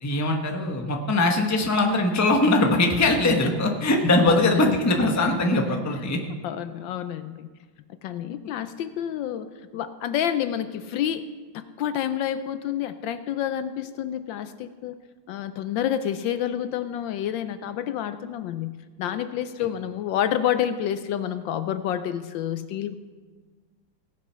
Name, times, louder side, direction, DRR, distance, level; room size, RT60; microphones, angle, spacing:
voice 1, 0.0-6.2, left 2 dB, 10° left, 2 dB, 0.8 m, -21 dB
voice 2, 4.3-4.8 5.8-6.1 6.4-7.5 8.0-9.5 9.7-11.2 11.5-14.9 15.3-22.9, left 10 dB, 75° left, 11 dB, 1.2 m, -29 dB
18.0 x 7.5 x 5.6 m, 1.4 s
omnidirectional pair, 2.2 m